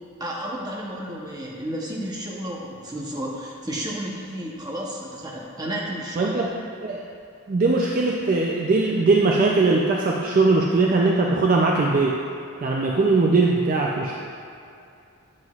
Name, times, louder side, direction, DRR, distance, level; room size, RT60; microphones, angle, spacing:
voice 1, 0.2-6.4, right 1 dB, 20° right, -3 dB, 0.7 m, -32 dB
voice 2, 6.2-6.5 6.8-7.0 7.5-12.2 12.6-14.2, right 3 dB, 40° right, -1 dB, 0.3 m, -20 dB
7.8 x 7.4 x 2.3 m, 2.5 s
head